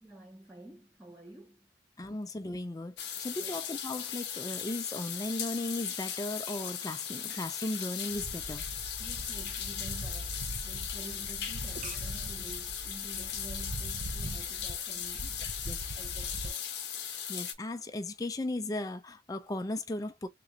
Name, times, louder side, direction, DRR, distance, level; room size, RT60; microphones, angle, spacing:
voice 1, 0.0-1.7 3.4-3.6 9.0-16.6, right 1 dB, 5° right, 0.7 m, -50 dB
voice 2, 2.0-8.6 15.7-15.8 17.3-20.3, left 2 dB, 20° left, 0.4 m, -36 dB
sound 1, 3.0-17.5, left 9 dB, 65° left, 0.8 m, -38 dB
sound 2, 8.1-16.5, right 1 dB, 40° right, 0.6 m, -41 dB
3.8 x 2.5 x 3.0 m
head